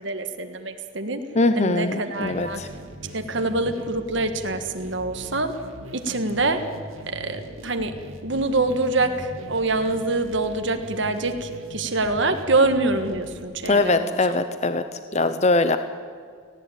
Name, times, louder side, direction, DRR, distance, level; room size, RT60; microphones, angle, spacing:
voice 1, 0.0-1.2 1.6-2.6 3.1-5.5 5.9-6.6 7.1-7.9 8.2-14.4, right 2 dB, 60° right, 7 dB, 1.5 m, -25 dB
voice 2, 1.3-2.7 13.7-15.8, left 2 dB, 35° left, 10 dB, 0.7 m, -22 dB
sound 1, 2.1-13.4, equal, 85° right, 2.4 m, -41 dB
18.5 x 16.5 x 8.9 m, 2.1 s
head